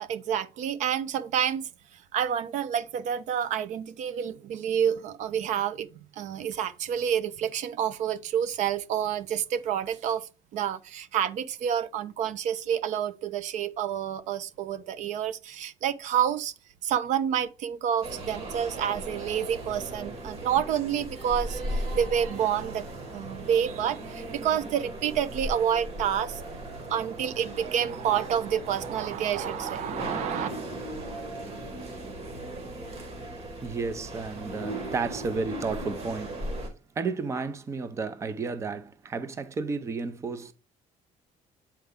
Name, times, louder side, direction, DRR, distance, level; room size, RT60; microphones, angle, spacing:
voice 1, 0.0-1.7 2.1-5.9 6.2-16.5 16.8-26.4 26.9-30.5, right 9 dB, 65° right, 0.6 m, -29 dB
sound 1, 18.0-36.7, right 1 dB, 45° right, 2.1 m, -37 dB
voice 2, 33.6-36.4 37.0-40.5, right 4 dB, 20° right, 0.6 m, -32 dB
8.0 x 4.5 x 3.6 m
cardioid pair, 165°, 13 cm